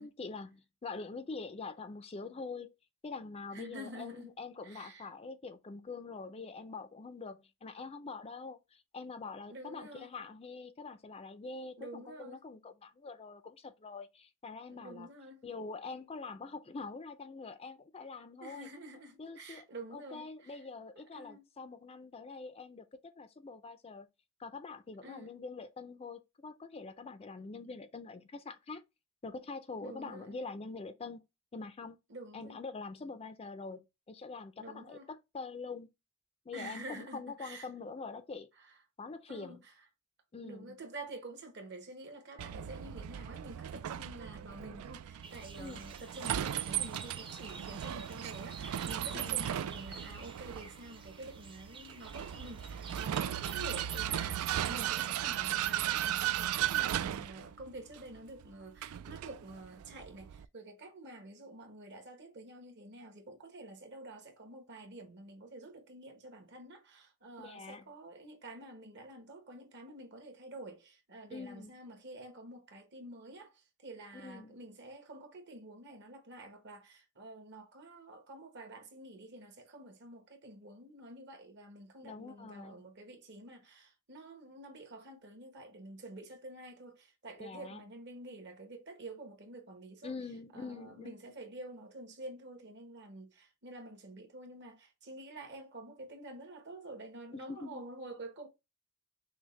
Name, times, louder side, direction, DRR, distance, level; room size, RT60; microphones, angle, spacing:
voice 1, 0.0-2.7 3.0-15.1 15.4-18.7 19.2-19.7 19.9-24.1 24.4-28.8 29.2-31.2 31.5-32.0 32.3-35.9 36.5-38.5 39.0-39.6 40.3-40.7 45.6-45.8 49.1-49.5 67.4-67.9 71.3-71.8 74.1-74.5 82.0-82.8 87.4-87.8 90.0-91.4 97.3-97.8, left 4 dB, 25° left, 0.4 m, -45 dB
voice 2, 3.5-4.3 4.6-5.1 9.5-10.1 11.8-12.4 14.7-15.4 18.4-20.6 21.1-21.4 25.0-25.3 29.8-30.4 32.1-32.6 34.6-35.1 36.5-37.7 39.3-39.7 40.4-90.2 90.5-98.5, right 1 dB, 55° right, 1.2 m, -49 dB
Vehicle, 42.4-60.5, right 11 dB, 75° right, 0.3 m, -36 dB
sound 1, 45.2-55.4, right 4 dB, 25° right, 0.6 m, -51 dB
6.2 x 2.2 x 3.2 m
head